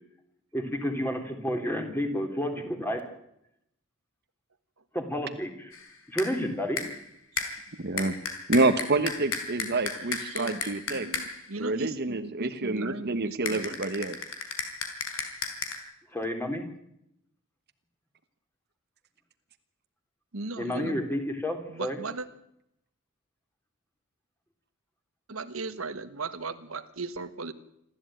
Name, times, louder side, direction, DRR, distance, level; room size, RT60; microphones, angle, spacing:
voice 1, 0.5-3.1 4.9-5.8 6.1-6.8 16.1-16.7 20.6-22.0, equal, 10° left, 5 dB, 3.6 m, -30 dB
sound 1, 5.7-6.4 6.8-7.1 7.4-11.5 13.5-15.8, left 5 dB, 70° left, 4.7 m, -35 dB
voice 2, 7.8-8.2 8.5-11.1 11.6-14.2, right 2 dB, 50° right, 8 dB, 1.3 m, -27 dB
voice 3, 10.1-13.7 20.3-21.1 21.7-22.2 25.3-27.5, right 3 dB, 80° right, 10 dB, 1.6 m, -37 dB
27.0 x 13.5 x 9.2 m, 0.79 s
head